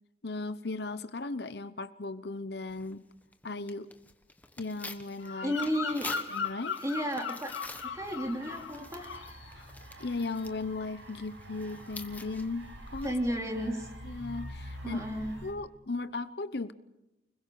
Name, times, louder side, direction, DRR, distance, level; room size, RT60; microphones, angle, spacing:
voice 1, 0.2-3.0 3.4-3.9 4.6-5.5 6.3-6.8 9.6-9.7 10.0-13.4 14.0-15.0 15.4-16.7, left 3 dB, 55° left, 12 dB, 0.9 m, -36 dB
Tearing, 2.7-13.4, left 3 dB, 10° left, 1.3 m, -48 dB
Bird vocalization bird call bird song, 5.2-8.7 9.0-9.4, left 5 dB, 85° left, 2.3 m, -37 dB
voice 2, 5.4-6.1 6.8-7.5 7.9-9.1 13.0-13.9 14.8-15.3, equal, 15° right, 2 dB, 3.2 m, -32 dB
sound 1, 7.7-15.5, right 1 dB, 75° right, 6.0 m, -47 dB
30.0 x 21.5 x 4.7 m, 0.92 s
head